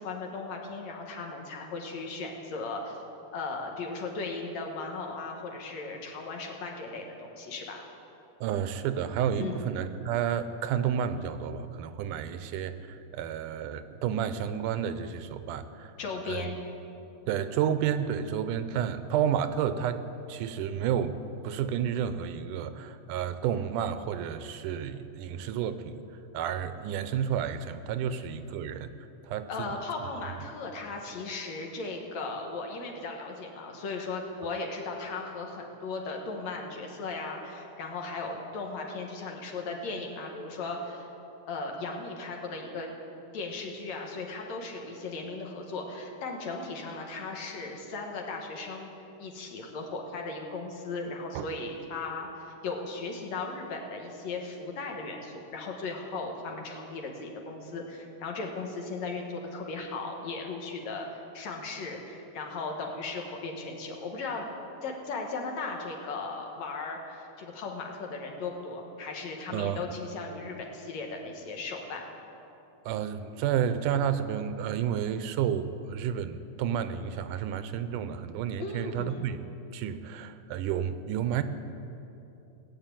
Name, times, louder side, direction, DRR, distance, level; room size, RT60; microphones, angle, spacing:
voice 1, 0.0-3.0 3.3-7.8 9.4-9.7 16.0-16.6 29.5-41.1 41.5-42.9 43.3-48.9 49.2-64.4 64.8-72.1 78.6-79.3, left 3 dB, 65° left, 2 dB, 2.6 m, -37 dB
voice 2, 8.4-15.9 16.3-16.5 17.3-20.0 20.3-21.2 21.4-26.0 26.3-28.9 29.2-29.8 51.3-51.5 69.5-69.9 72.9-79.4 79.7-81.4, right 9 dB, 85° right, 11 dB, 2.2 m, -31 dB
17.5 x 7.5 x 9.0 m, 2.9 s
omnidirectional pair, 3.6 m